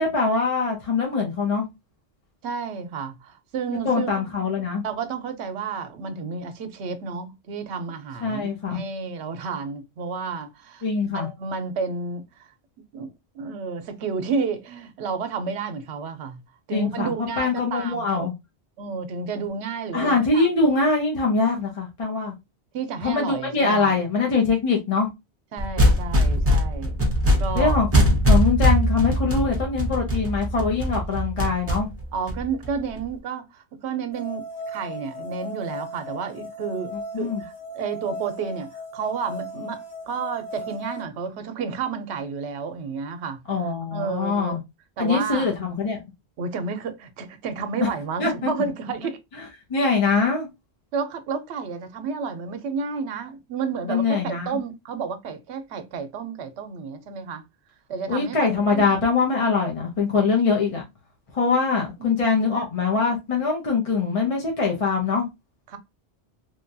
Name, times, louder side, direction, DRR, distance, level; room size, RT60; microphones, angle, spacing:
voice 1, 0.0-1.7 3.8-4.8 8.2-8.8 10.8-11.3 16.7-18.3 19.9-22.3 23.0-25.1 27.6-27.9 28.3-31.9 37.1-37.4 43.5-44.6 45.0-46.0 47.8-47.9 48.2-48.5 49.7-50.5 53.9-54.5 58.1-60.8 61.3-65.3, left 4 dB, 40° left, 0.6 m, -23 dB
voice 2, 2.4-4.1 4.8-10.9 11.1-12.5 12.9-16.4 16.7-18.3 18.8-20.5 22.7-23.9 25.5-27.0 27.4-27.8 32.1-44.6 45.0-45.5 46.4-49.2 50.9-57.4 57.9-58.9 62.0-62.4 65.7-65.8, right 5 dB, 75° right, 0.8 m, -31 dB
sound 1, 25.6-33.0, equal, 15° right, 0.6 m, -21 dB
sound 2, 34.1-41.0, left 1 dB, 65° left, 1.6 m, -36 dB
3.1 x 2.2 x 2.5 m
omnidirectional pair, 1.1 m